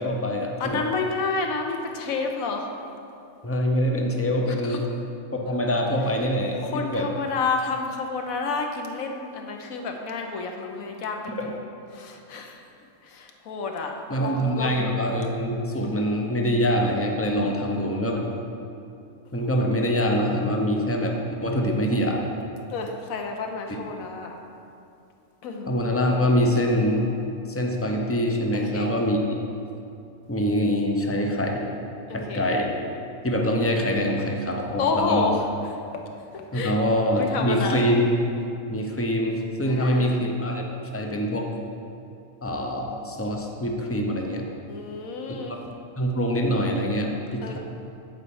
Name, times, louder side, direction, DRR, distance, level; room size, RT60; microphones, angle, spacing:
voice 1, 0.0-0.9 3.4-4.8 5.3-7.1 11.3-11.6 14.1-18.3 19.3-21.1 21.4-22.3 25.7-27.1 27.5-29.2 30.3-31.7 32.1-32.7 33.2-35.3 36.5-38.1 38.7-40.7 40.9-41.5 42.4-44.4 46.0-47.6, equal, 25° left, 1 dB, 0.3 m, -24 dB
voice 2, 0.6-2.7 4.6-4.8 6.6-11.5 11.9-12.6 13.0-14.7 22.7-24.3 25.4-25.7 28.5-28.9 32.1-32.4 34.8-35.4 35.9-36.0 36.3-36.7 37.1-37.9 39.6-40.2 44.7-45.5 47.4-47.6, left 4 dB, 80° left, 3 dB, 1.3 m, -30 dB
8.7 x 4.2 x 7.0 m, 2.6 s
omnidirectional pair, 1.4 m